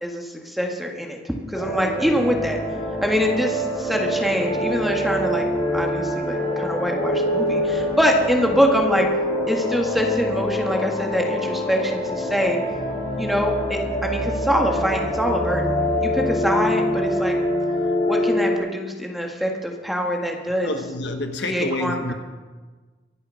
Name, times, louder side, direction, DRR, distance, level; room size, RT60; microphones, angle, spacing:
voice 1, 0.0-2.6 3.0-5.4 5.7-9.1 9.5-12.6 13.2-15.7 16.0-17.3 18.1-20.7 21.4-22.1, equal, ahead, 1 dB, 1.7 m, -24 dB
sound 1, 1.5-18.6, equal, 30° left, 3.4 m, -25 dB
voice 2, 20.6-22.1, left 2 dB, 75° left, 6 dB, 1.3 m, -28 dB
24.0 x 8.0 x 6.4 m, 1.4 s
head